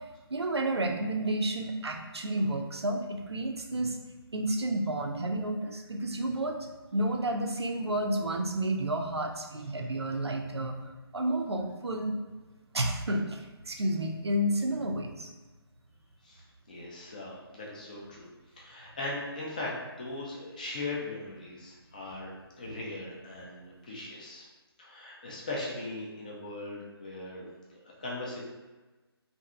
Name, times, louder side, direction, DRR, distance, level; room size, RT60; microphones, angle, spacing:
voice 1, 0.3-4.0 4.3-10.8 11.1-12.2 12.7-15.3 22.7-22.8, right 1 dB, 80° right, 3 dB, 0.4 m, -31 dB
voice 2, 16.2-18.3 18.6-22.3 22.6-24.5 24.8-28.4, left 2 dB, 20° left, -4 dB, 0.3 m, -39 dB
2.6 x 2.5 x 2.3 m, 1.2 s
figure-of-eight pair, 145°, 13 cm